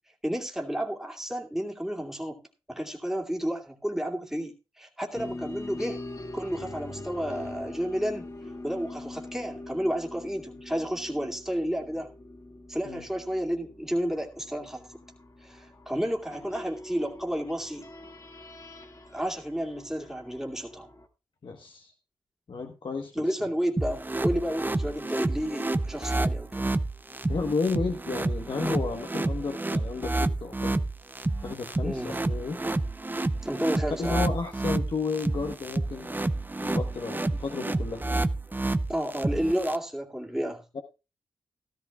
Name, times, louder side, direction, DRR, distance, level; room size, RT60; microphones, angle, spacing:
voice 1, 0.2-2.4 2.7-6.0 6.3-8.3 8.6-12.1 12.7-14.9 15.4-17.8 19.1-20.9 23.1-26.7 31.8-32.2 33.4-34.2 38.9-40.6, equal, 5° right, 0 dB, 2.4 m, -31 dB
sound 1, 5.1-21.1, left 2 dB, 40° left, 1.9 m, -43 dB
voice 2, 21.4-21.9 22.5-23.4 27.3-30.8 31.4-32.6 34.0-36.1 36.5-38.2 40.7-40.8, left 4 dB, 60° left, 3 dB, 1.2 m, -32 dB
sound 2, 23.8-39.8, right 2 dB, 20° right, 0.7 m, -29 dB
14.5 x 13.0 x 2.4 m, 0.29 s
supercardioid pair, 45°, 9 cm